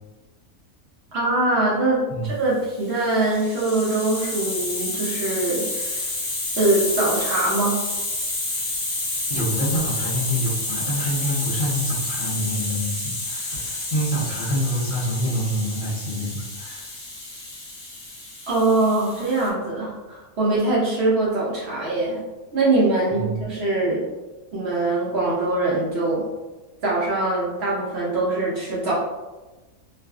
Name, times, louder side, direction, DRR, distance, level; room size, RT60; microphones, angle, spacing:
voice 1, 1.1-6.2 6.6-7.8 18.5-22.2 22.5-24.0 24.5-26.2 26.8-28.9, right 2 dB, 60° right, -6 dB, 0.7 m, -23 dB
Hiss, 2.8-19.5, left 2 dB, 45° left, 0.9 m, -29 dB
voice 2, 9.3-16.9 23.1-23.4, equal, 70° left, -6 dB, 0.4 m, -26 dB
2.5 x 2.3 x 2.2 m, 1.1 s
omnidirectional pair, 1.5 m